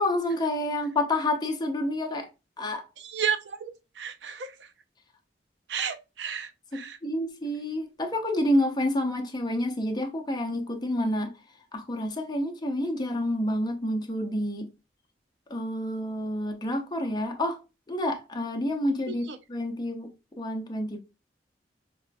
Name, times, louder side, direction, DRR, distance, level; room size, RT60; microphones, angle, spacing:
voice 1, 0.0-2.3 2.6-2.9 6.7-11.4 11.7-14.7 15.5-17.6 17.9-21.0, left 1 dB, 25° left, 0.6 m, -29 dB
voice 2, 3.0-4.5 5.7-7.0 19.3-19.4, right 7 dB, 80° right, 0.5 m, -32 dB
4.8 x 2.5 x 2.2 m
head